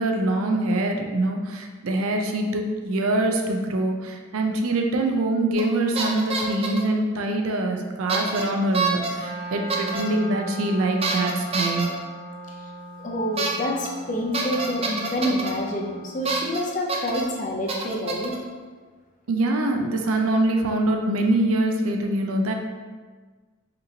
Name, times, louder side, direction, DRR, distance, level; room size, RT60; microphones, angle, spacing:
voice 1, 0.0-11.9 19.3-22.5, right 2 dB, 85° right, 3 dB, 0.5 m, -24 dB
sound 1, 5.6-5.7 5.9-6.9 8.1-8.4 8.7-9.1 9.7-10.0 11.0-11.9 13.4-13.5 13.8-13.9 14.3-15.5 16.2-16.6 16.9-17.2 17.7-18.4, right 4 dB, 30° right, 0.4 m, -27 dB
Wind instrument woodwind instrument, 9.1-16.3, equal, 60° left, 1.1 m, -39 dB
voice 2, 13.0-18.4, left 1 dB, 35° left, -1 dB, 0.6 m, -27 dB
5.1 x 2.9 x 2.8 m, 1.4 s
head